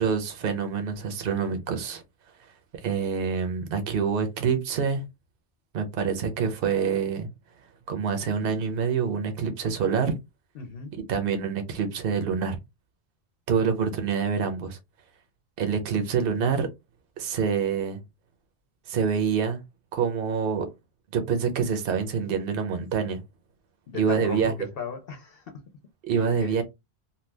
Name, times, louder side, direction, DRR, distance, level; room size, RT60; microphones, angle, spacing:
voice 1, 0.0-2.0 2.8-5.0 5.7-7.3 7.9-10.1 10.9-12.6 13.5-14.8 15.6-16.7 17.2-18.0 18.9-19.6 19.9-20.7 21.1-23.2 23.9-24.5 26.0-26.6, right 6 dB, 60° right, 0.9 m, -26 dB
voice 2, 10.6-10.9 23.9-25.4 26.2-26.6, left 5 dB, 65° left, 0.8 m, -37 dB
2.7 x 2.3 x 3.2 m
omnidirectional pair, 1.1 m